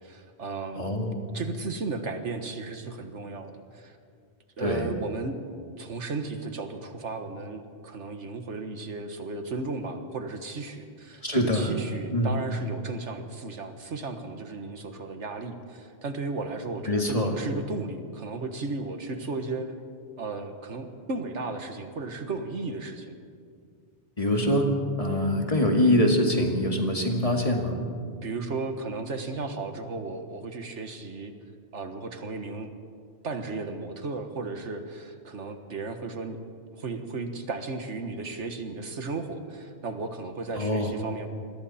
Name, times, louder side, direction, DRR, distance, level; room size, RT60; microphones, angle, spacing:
voice 1, 0.0-0.9 1.3-4.0 4.6-5.4 5.8-19.7 20.2-23.1 28.2-31.3 31.7-32.7 33.2-36.4 36.8-41.3, right 3 dB, 80° right, 6 dB, 1.7 m, -35 dB
voice 2, 0.7-1.2 4.6-4.9 11.2-11.7 12.1-12.3 16.9-17.3 24.2-24.7 25.0-27.7 40.6-40.9, left 1 dB, 30° left, 2 dB, 2.2 m, -24 dB
27.5 x 22.0 x 4.3 m, 2.2 s
omnidirectional pair, 1.2 m